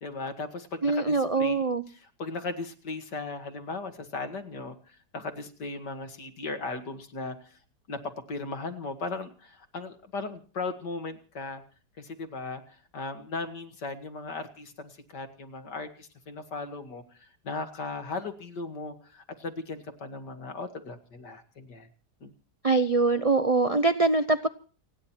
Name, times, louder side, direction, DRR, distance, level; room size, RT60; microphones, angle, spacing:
voice 1, 0.0-7.6 7.9-11.6 12.0-21.9 22.2-22.3, left 3 dB, 75° left, 7 dB, 2.7 m, -37 dB
voice 2, 0.8-1.8 22.6-24.5, right 3 dB, 40° right, 11 dB, 0.5 m, -23 dB
30.0 x 10.0 x 4.5 m, 0.39 s
omnidirectional pair, 1.8 m